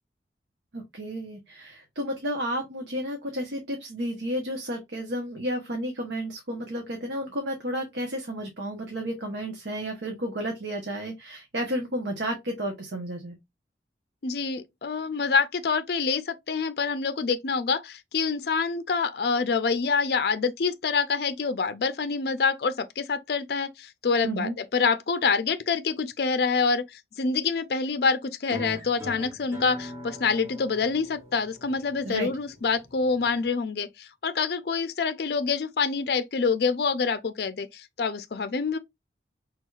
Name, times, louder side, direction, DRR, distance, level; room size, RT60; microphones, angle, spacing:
voice 1, 0.7-13.4 24.2-24.6 32.0-32.3, equal, 85° right, 1.0 m, -32 dB
voice 2, 14.2-38.8, left 5 dB, 60° left, 0.5 m, -26 dB
sound 1, 28.5-33.5, equal, 15° right, 1.4 m, -42 dB
4.5 x 3.4 x 2.4 m
head